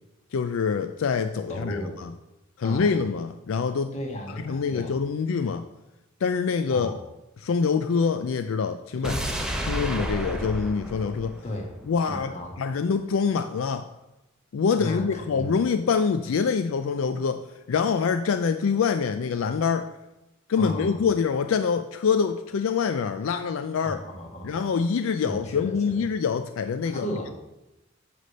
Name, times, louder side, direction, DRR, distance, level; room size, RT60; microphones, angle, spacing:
voice 1, 0.3-2.1 2.6-3.9 4.4-5.7 6.2-7.0 7.4-9.2 9.7-11.4 11.9-12.3 12.6-13.9 14.5-19.9 20.5-24.0 24.4-27.1, left 5 dB, 70° left, 9 dB, 0.4 m, -25 dB
voice 2, 1.5-2.0 2.6-2.9 3.9-5.0 6.7-7.0 8.9-9.3 11.4-11.7 12.1-12.5 14.8-15.6 20.6-21.0 23.8-24.6 25.2-26.1 26.8-27.3, left 1 dB, 35° left, 1 dB, 1.4 m, -34 dB
sound 1, 9.0-12.2 12.5-12.6, equal, 5° right, 0.8 m, -31 dB
9.1 x 3.4 x 6.5 m, 0.96 s
head